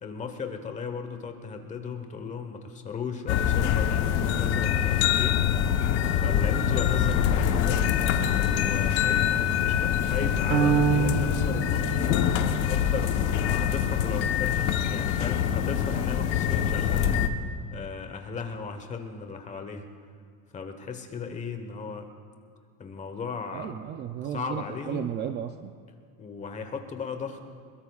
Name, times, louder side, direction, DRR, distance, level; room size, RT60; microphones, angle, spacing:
voice 1, 0.0-5.4 6.1-7.9 8.3-12.1 12.6-17.3 17.7-19.9 20.5-22.1 22.8-23.8 24.2-25.1 26.2-27.4, left 5 dB, 20° left, 6 dB, 1.2 m, -36 dB
sound 1, 3.3-17.3, left 9 dB, 85° left, 1.1 m, -25 dB
sound 2, 10.5-12.8, right 7 dB, 55° right, 1.9 m, -26 dB
voice 2, 23.5-25.7, right 9 dB, 30° right, 7 dB, 0.5 m, -34 dB
21.5 x 21.5 x 2.4 m, 2.2 s
cardioid pair, 160°, 34 cm